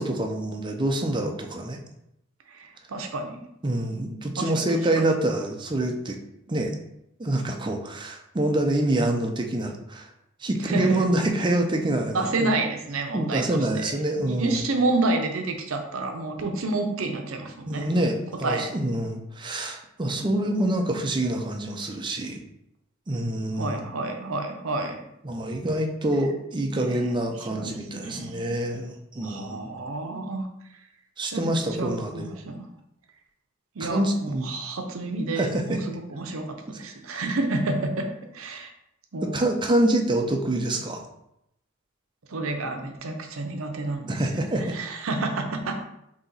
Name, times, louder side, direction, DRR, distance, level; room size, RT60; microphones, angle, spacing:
voice 1, 0.0-1.8 3.6-6.2 6.5-6.7 7.2-10.1 10.4-12.5 13.1-14.6 17.7-22.4 23.1-23.9 25.2-29.7 31.2-32.2 33.8-34.5 35.4-35.8 36.7-36.8 39.2-41.0 44.1-44.7, right 1 dB, 20° right, 2 dB, 0.5 m, -26 dB
voice 2, 2.5-3.5 4.4-4.7 5.0-5.1 10.6-11.0 12.1-17.9 18.4-18.7 23.6-25.0 26.7-28.6 29.2-30.5 31.3-31.4 31.8-32.7 33.8-36.5 36.8-38.1 38.3-38.7 39.1-39.4 42.3-44.2 44.7-45.8, right 2 dB, 70° right, 4 dB, 0.6 m, -29 dB
4.0 x 2.9 x 3.9 m, 0.81 s
head